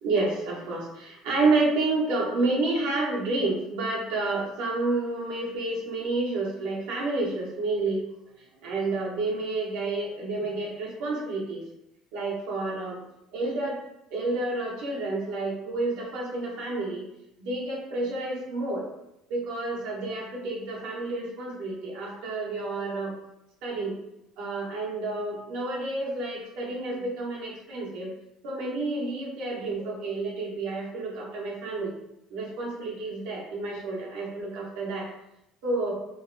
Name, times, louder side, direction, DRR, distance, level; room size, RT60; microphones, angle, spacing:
voice 1, 0.0-8.0 8.4-11.6 12.1-13.0 13.3-13.8 14.1-17.0 17.4-18.8 19.3-23.1 23.6-23.9 24.4-28.1 28.4-31.9 32.3-35.1 35.6-35.9, right 2 dB, 85° right, -4 dB, 0.8 m, -29 dB
2.6 x 2.1 x 2.5 m, 0.85 s
cardioid pair, 125°, 0 cm